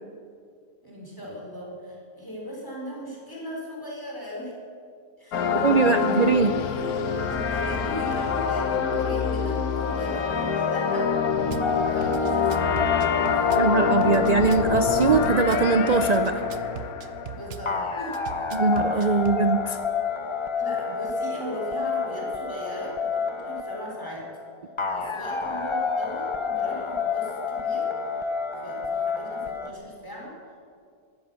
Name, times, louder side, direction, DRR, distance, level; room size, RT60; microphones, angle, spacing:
voice 1, 0.8-4.5 5.2-6.4 7.3-11.1 11.8-12.7 13.3-13.4 17.3-18.4 18.9-19.2 20.6-24.3 25.0-27.9 28.6-30.3, equal, 15° left, -3 dB, 4.3 m, -38 dB
sound 1, 5.3-17.9, left 6 dB, 80° left, 1.5 m, -26 dB
voice 2, 5.6-6.5 13.6-16.4 18.5-19.8, right 4 dB, 90° right, 9 dB, 0.3 m, -21 dB
Drum kit / Bass drum, 11.5-11.7 12.0-13.7 14.0-15.7 16.0-17.7 18.1-19.4, right 8 dB, 60° right, 1.0 m, -39 dB
sound 2, 11.6-29.7, left 5 dB, 30° left, 0.6 m, -29 dB
16.0 x 13.0 x 7.0 m, 2.3 s
omnidirectional pair, 1.5 m